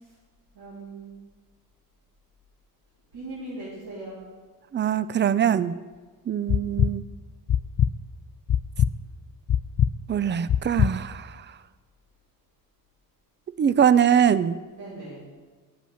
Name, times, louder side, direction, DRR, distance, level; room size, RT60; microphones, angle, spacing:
voice 1, 0.5-1.2 3.1-4.2 14.7-15.3, right 2 dB, 80° right, -9 dB, 3.8 m, -39 dB
voice 2, 4.7-5.7 6.3-7.0 10.1-11.5 13.6-14.6, right 8 dB, 30° right, 16 dB, 0.4 m, -22 dB
sound 1, 6.5-6.9 7.5-7.9 8.5-8.9 9.5-9.9 10.5-10.9, left 9 dB, 40° left, 0.4 m, -21 dB
8.2 x 7.9 x 6.5 m, 1.4 s
cardioid pair, 100°, 36 cm